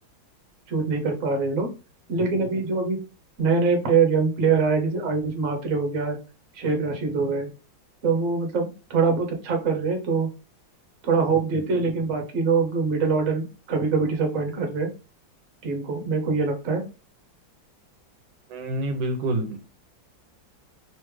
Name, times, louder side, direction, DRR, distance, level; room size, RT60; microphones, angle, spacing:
voice 1, 0.7-1.7 2.1-3.0 3.4-6.2 6.5-7.5 8.0-10.3 11.0-14.9 15.6-16.8, right 4 dB, 50° right, 3 dB, 1.2 m, -24 dB
voice 2, 18.5-19.6, right 1 dB, 75° right, 5 dB, 1.4 m, -27 dB
3.4 x 3.2 x 3.2 m, 0.33 s
omnidirectional pair, 2.1 m